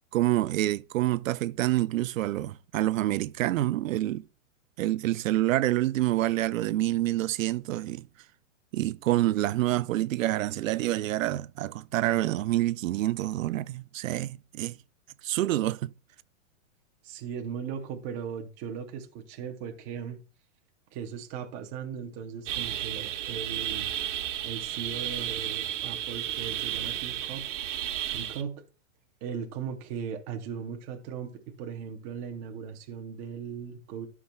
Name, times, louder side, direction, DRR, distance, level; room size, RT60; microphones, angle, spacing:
voice 1, 0.1-4.2 4.8-8.1 8.7-14.8 15.2-15.9, right 15 dB, 80° right, 0.5 m, -27 dB
voice 2, 17.0-20.2 20.9-23.9 24.4-27.5 28.1-28.5 29.2-34.1, right 7 dB, 15° right, 0.6 m, -38 dB
sound 1, 22.5-28.4, right 11 dB, 65° right, 1.1 m, -33 dB
12.5 x 5.9 x 2.2 m
supercardioid pair, 170°, 40 cm